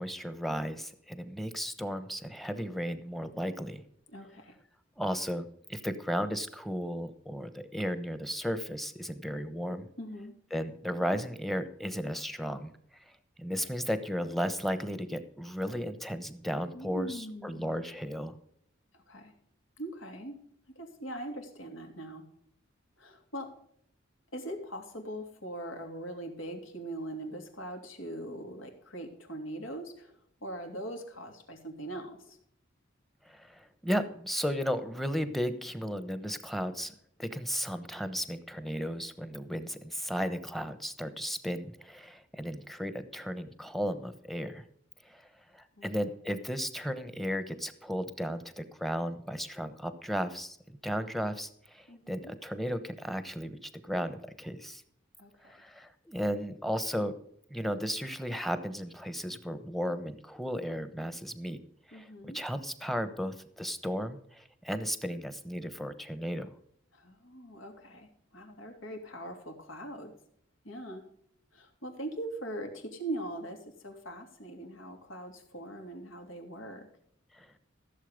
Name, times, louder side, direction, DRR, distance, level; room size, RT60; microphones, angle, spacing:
voice 1, 0.0-3.8 5.0-9.9 10.5-12.7 13.4-18.3 33.2-36.9 37.2-44.6 45.0-45.2 45.5-54.8 55.4-57.2 57.5-61.6 61.9-66.5 77.3-77.5, equal, ahead, 11 dB, 1.0 m, -35 dB
voice 2, 4.1-4.6 10.0-10.3 16.7-17.7 18.9-19.3 19.8-20.4 20.7-22.3 23.0-23.5 24.3-30.1 30.4-32.4 45.8-45.9 51.9-52.3 55.2-55.5 61.9-62.4 66.9-70.1 70.6-71.0 71.5-76.9, right 1 dB, 85° left, 3 dB, 3.0 m, -41 dB
15.0 x 7.5 x 5.2 m, 0.67 s
head